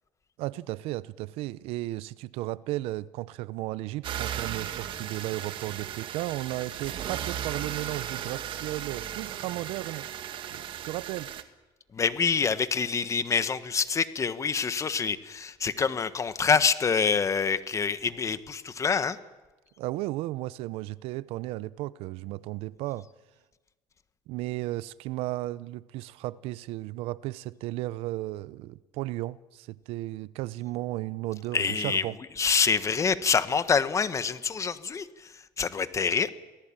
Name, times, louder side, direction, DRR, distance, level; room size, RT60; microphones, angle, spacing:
voice 1, 0.4-10.1 10.5-11.3 19.8-23.1 24.3-32.2, right 17 dB, 75° right, 0.7 m, -34 dB
sound 1, 4.0-11.4, right 10 dB, 55° right, 1.9 m, -36 dB
voice 2, 11.9-19.2 31.5-32.1 32.4-36.3, left 5 dB, 30° left, 1.5 m, -26 dB
27.0 x 18.5 x 8.9 m
supercardioid pair, 100°, 10 cm